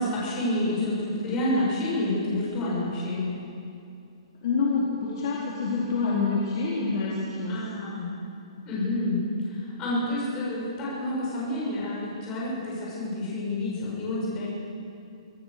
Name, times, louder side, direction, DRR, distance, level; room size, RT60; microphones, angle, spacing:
voice 1, 0.0-3.4 7.5-8.2 8.7-14.5, left 1 dB, 20° left, -6 dB, 7.3 m, -29 dB
voice 2, 4.4-7.6, left 4 dB, 40° left, -6 dB, 4.1 m, -27 dB
25.5 x 15.5 x 6.9 m, 2.5 s
hypercardioid pair, 175°, 3 cm